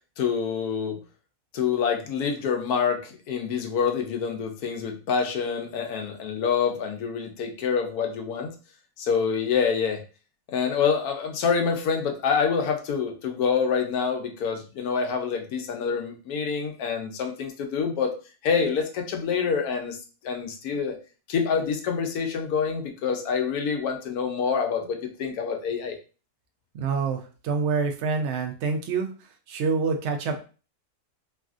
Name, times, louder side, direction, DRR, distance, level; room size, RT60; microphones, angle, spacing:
voice 1, 0.2-1.0 1.5-8.5 9.0-10.0 10.5-18.1 18.4-20.0 20.2-20.9 21.3-26.0, left 6 dB, 75° left, 4 dB, 1.1 m, -26 dB
voice 2, 26.7-30.4, right 5 dB, 65° right, 4 dB, 0.7 m, -27 dB
3.2 x 2.4 x 2.4 m, 0.35 s
omnidirectional pair, 1.6 m